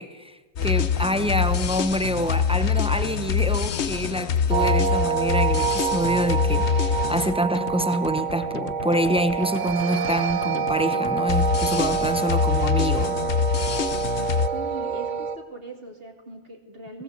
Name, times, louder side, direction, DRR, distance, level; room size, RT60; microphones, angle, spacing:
voice 1, 0.0-13.2, equal, 5° right, 0.8 m, -26 dB
sound 1, 0.6-14.5, left 7 dB, 55° left, 1.0 m, -26 dB
sound 2, 4.5-15.4, right 6 dB, 60° right, 1.3 m, -26 dB
voice 2, 14.5-17.0, right 3 dB, 40° right, 3.1 m, -40 dB
20.0 x 18.5 x 8.1 m
omnidirectional pair, 1.5 m